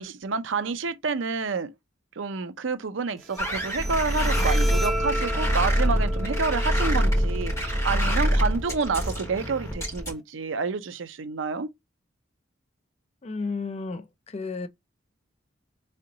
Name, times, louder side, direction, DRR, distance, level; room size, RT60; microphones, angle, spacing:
voice 1, 0.0-1.7 2.2-11.7, right 4 dB, 75° right, 0.6 m, -29 dB
Bowed string instrument, 3.2-10.2, equal, ahead, 0.8 m, -36 dB
sound 1, 3.4-10.1, equal, 15° left, 2.2 m, -25 dB
voice 2, 13.2-14.7, left 4 dB, 35° left, 0.4 m, -33 dB
3.8 x 3.3 x 3.8 m
head